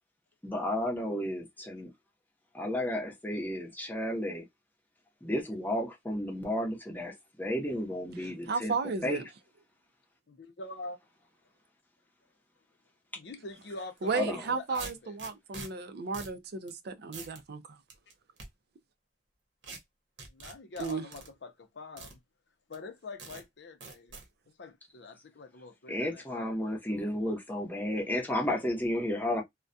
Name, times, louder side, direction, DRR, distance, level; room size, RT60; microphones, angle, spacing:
voice 1, 0.4-1.9 2.5-4.4 5.2-8.7 9.0-9.2 14.1-14.5 25.9-29.4, left 1 dB, 10° left, 0.7 m, -32 dB
voice 2, 8.2-9.2 14.0-17.6 20.8-21.0, right 4 dB, 60° right, 0.4 m, -34 dB
voice 3, 10.3-11.0 13.2-15.2 20.3-22.2 22.7-24.2 24.6-26.5, left 3 dB, 65° left, 0.6 m, -44 dB
sound 1, 14.0-14.1 14.7-15.7 16.1-16.4 16.7-16.8 17.1-17.4 17.9-18.5 19.6-19.8 20.2-21.3 22.0-22.1 22.7-22.8 23.2-23.4 23.8-24.2, right 4 dB, 75° right, 0.8 m, -44 dB
2.3 x 2.1 x 2.5 m
head